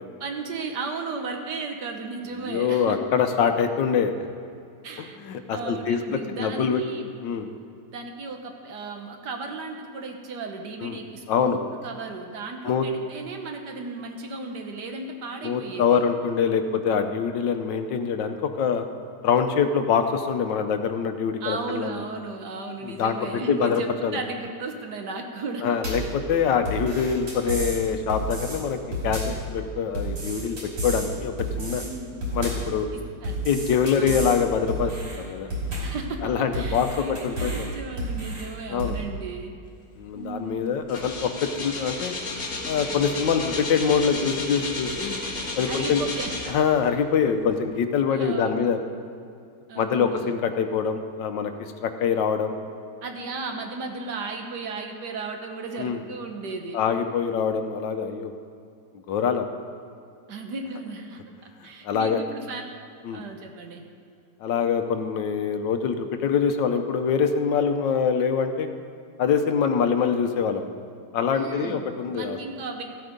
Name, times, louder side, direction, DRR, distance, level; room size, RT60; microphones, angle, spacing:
voice 1, 0.2-3.0 4.8-5.2 5.5-7.1 7.9-11.6 11.8-16.0 21.4-25.6 31.8-32.2 33.2-33.4 34.0-34.2 35.8-37.1 37.4-39.5 40.1-40.7 45.7-46.3 48.1-48.7 49.7-50.3 53.0-56.8 60.3-61.2 61.6-62.6 63.1-63.8 71.3-72.8, right 3 dB, 65° right, 4 dB, 1.6 m, -35 dB
voice 2, 2.4-4.1 5.0-6.8 7.2-7.5 10.8-11.0 11.3-11.6 12.6-12.9 15.4-18.8 19.2-22.0 22.8-23.2 23.5-24.2 25.6-28.8 29.0-31.8 32.3-32.9 33.4-35.5 36.2-37.7 38.7-39.0 40.0-42.1 42.7-45.2 45.6-46.0 46.5-48.8 49.8-52.6 55.8-56.0 56.7-58.3 59.1-59.5 61.8-62.2 63.0-63.2 64.4-68.7 69.2-70.7 71.1-72.4, left 6 dB, 80° left, 7 dB, 1.5 m, -24 dB
sound 1, 25.8-26.1 26.7-27.8 28.1-28.6 28.9-29.4 29.9-31.1 31.4-31.9 32.2-32.7 33.2-34.4 34.7-35.2 35.5-36.0 36.5-37.7 38.0-38.5 38.8-39.0, right 1 dB, 85° right, 4.0 m, -30 dB
sound 2, 40.1-40.3 40.6-46.9 47.4-47.5, left 3 dB, 45° left, 2.1 m, -32 dB
14.5 x 8.2 x 5.1 m, 2.5 s
omnidirectional pair, 2.0 m